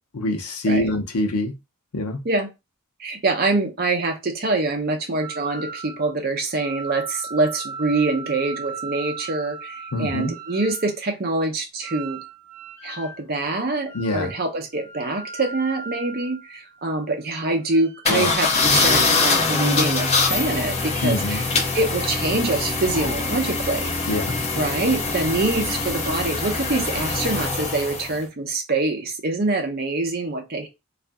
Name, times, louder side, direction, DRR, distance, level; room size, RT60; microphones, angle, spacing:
voice 1, 0.1-1.5 1.9-2.2 9.9-10.3 13.9-14.3 18.1-18.3 21.0-21.4 24.1-24.3, left 1 dB, 80° left, 5 dB, 0.7 m, -24 dB
voice 2, 3.0-12.2 12.8-21.5 21.7-23.9 24.5-30.7, right 2 dB, 45° right, 4 dB, 0.6 m, -25 dB
sound 1, 5.2-6.1 6.5-10.9 11.8-13.2 13.9-14.4 14.8-17.0 17.6-18.5 19.4-20.4 20.7-21.1, right 4 dB, ahead, 1.4 m, -37 dB
sound 2, 18.0-28.2, left 3 dB, 30° left, 0.5 m, -23 dB
2.6 x 2.4 x 2.2 m, 0.24 s
head